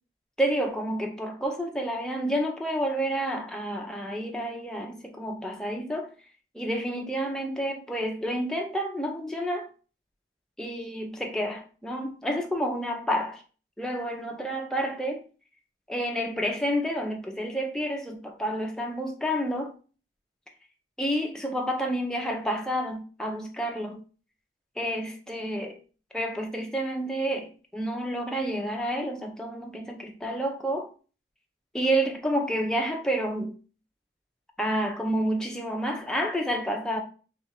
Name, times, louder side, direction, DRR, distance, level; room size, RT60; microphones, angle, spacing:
voice 1, 0.4-6.1 6.5-9.7 10.6-13.4 13.8-15.2 15.9-19.7 21.0-24.0 24.8-25.8 26.1-30.9 31.7-33.5 34.6-37.0, equal, 5° left, 0.5 m, -29 dB
3.1 x 2.4 x 4.2 m
head